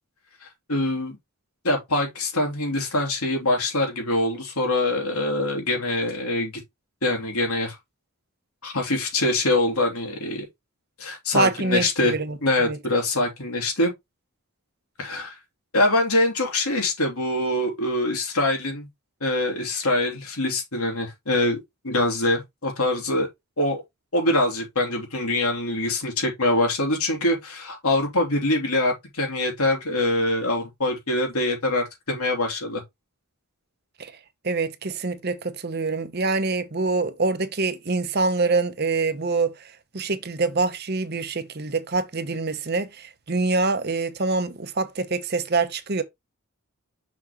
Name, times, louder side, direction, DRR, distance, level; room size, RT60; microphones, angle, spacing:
voice 1, 0.4-1.2 1.6-6.6 7.0-7.7 8.6-10.5 11.0-12.1 12.4-13.9 15.0-15.4 15.7-18.9 19.2-23.3 23.6-23.8 24.1-32.8, left 2 dB, 90° left, 3.2 m, -24 dB
voice 2, 11.3-12.8 34.0-34.1 34.4-39.6 39.9-46.0, right 3 dB, 45° right, 0.8 m, -25 dB
6.2 x 6.0 x 3.0 m
head